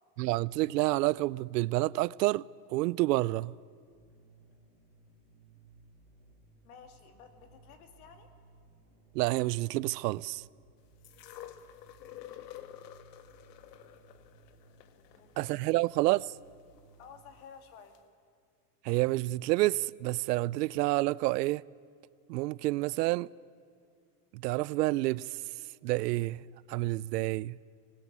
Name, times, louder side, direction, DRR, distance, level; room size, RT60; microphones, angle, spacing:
voice 1, 0.2-3.5 9.1-10.4 15.4-16.3 18.8-21.6 22.3-23.3 24.3-25.4 25.8-26.4 26.7-27.6, right 19 dB, 80° right, 0.6 m, -29 dB
sound 1, 3.8-17.4, right 3 dB, 15° right, 6.6 m, -61 dB
voice 2, 6.6-8.3 14.9-15.6 17.0-17.9, left 6 dB, 60° left, 3.0 m, -53 dB
sound 2, 11.0-17.1 17.9-18.0, left 12 dB, 80° left, 1.8 m, -50 dB
24.5 x 20.0 x 9.7 m
supercardioid pair, 180°, 48 cm